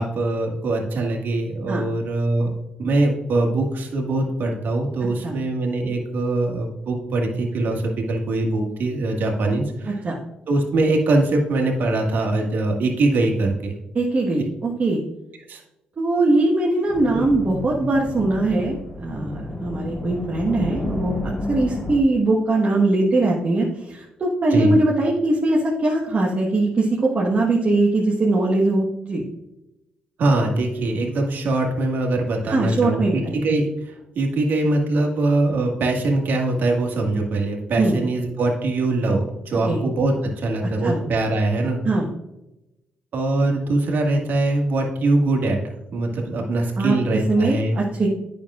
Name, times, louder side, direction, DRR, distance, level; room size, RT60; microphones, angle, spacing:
voice 1, 0.0-2.5 2.8-10.0 10.5-13.7 15.5-15.6 17.1-17.2 24.5-24.8 30.2-41.8 43.1-45.6 45.9-47.7, right 2 dB, 65° right, 1 dB, 1.7 m, -22 dB
voice 2, 13.9-15.0 16.0-29.2 32.5-33.4 37.8-37.9 39.7-39.8 40.8-41.0 41.8-42.1 46.8-48.1, right 2 dB, 45° right, -3 dB, 1.3 m, -21 dB
sound 1, 16.9-22.0, left 2 dB, 25° left, 2.4 m, -31 dB
9.0 x 6.3 x 2.4 m, 0.92 s
supercardioid pair, 55°, 4 cm